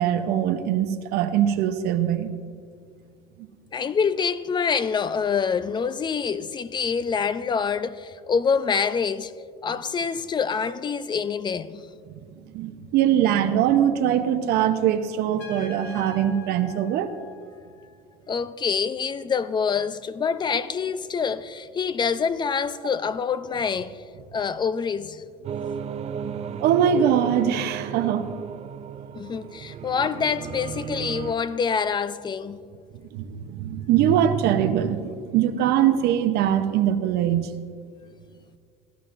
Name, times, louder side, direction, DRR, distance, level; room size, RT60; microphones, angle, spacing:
voice 1, 0.0-2.3 12.5-17.1 26.3-28.3 33.1-37.5, right 10 dB, 65° right, 0.8 m, -22 dB
voice 2, 3.7-9.3 9.6-11.9 18.3-24.0 24.3-25.2 29.1-32.6, left 6 dB, 25° left, 0.5 m, -26 dB
Trumpet, 15.4-18.0, left 4 dB, 70° left, 1.8 m, -44 dB
sound 1, 25.4-31.3, right 8 dB, 35° right, 0.4 m, -34 dB
16.5 x 12.5 x 2.6 m
supercardioid pair, 110°, 18 cm